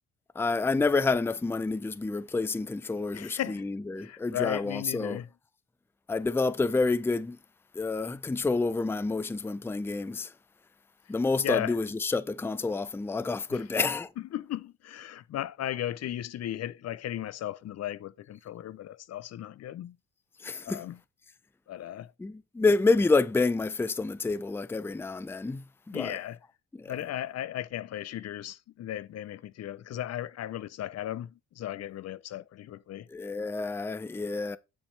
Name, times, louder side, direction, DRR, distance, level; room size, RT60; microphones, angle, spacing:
voice 1, 0.4-5.2 6.1-7.4 7.8-10.3 11.1-14.1 20.4-20.8 22.2-26.2 26.8-26.9 33.1-34.6, left 3 dB, 10° left, 0.5 m, -28 dB
voice 2, 3.1-3.7 4.0-5.3 11.4-11.8 13.5-13.6 14.2-20.0 20.6-21.0 21.7-22.1 25.9-26.4 26.9-33.1, left 12 dB, 55° left, 0.5 m, -36 dB
10.0 x 5.3 x 3.2 m
cardioid pair, 90°, 30 cm